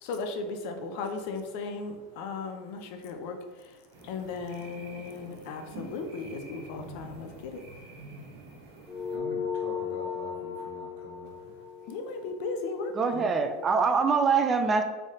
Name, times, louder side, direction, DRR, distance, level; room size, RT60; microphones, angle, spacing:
voice 1, 0.0-3.4 3.6-3.7 4.0-7.6 11.9-13.3, left 4 dB, 60° left, 6 dB, 0.6 m, -36 dB
sound 1, 3.9-9.2, right 2 dB, 65° right, 1.3 m, -47 dB
sound 2, 8.9-13.7, left 6 dB, 20° left, 0.7 m, -37 dB
voice 2, 9.1-11.5, equal, 85° right, -1 dB, 1.4 m, -45 dB
voice 3, 13.0-14.8, right 5 dB, 20° right, 7 dB, 0.3 m, -24 dB
4.0 x 3.4 x 3.8 m, 1.3 s
supercardioid pair, 145°, 0 cm